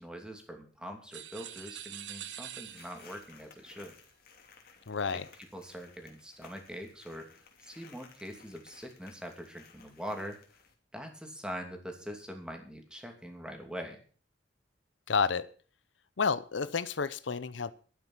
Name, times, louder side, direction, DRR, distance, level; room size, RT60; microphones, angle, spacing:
voice 1, 0.0-3.9 5.5-7.3 7.6-10.4 10.9-14.0, equal, 5° right, 4 dB, 2.8 m, -43 dB
sound 1, 1.1-3.3, right 11 dB, 80° right, 1.2 m, -44 dB
sound 2, 2.6-10.7, left 5 dB, 55° left, 2.7 m, -58 dB
voice 2, 4.9-5.3 15.1-15.5 16.2-17.7, left 5 dB, 80° left, 15 dB, 0.7 m, -30 dB
11.5 x 9.4 x 7.3 m, 0.41 s
head